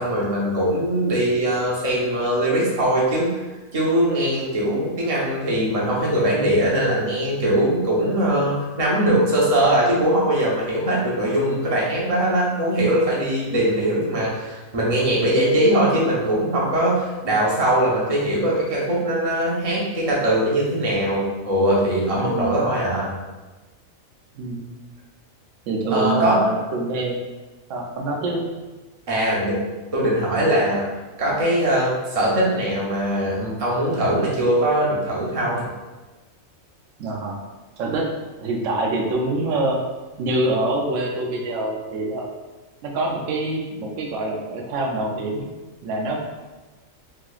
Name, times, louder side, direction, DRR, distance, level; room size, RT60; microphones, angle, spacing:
voice 1, 0.0-3.3 3.7-23.1 25.9-26.4 29.1-29.6 29.9-30.8 31.2-35.7, right 1 dB, 35° right, -5 dB, 0.7 m, -21 dB
voice 2, 22.1-22.7 24.3-24.7 25.7-27.2 27.7-28.4 37.0-37.4 37.8-38.1 38.4-39.8 40.2-42.3 42.8-45.5 45.8-46.2, right 2 dB, 70° right, 0 dB, 0.9 m, -25 dB
3.2 x 2.8 x 2.3 m, 1.2 s
omnidirectional pair, 1.4 m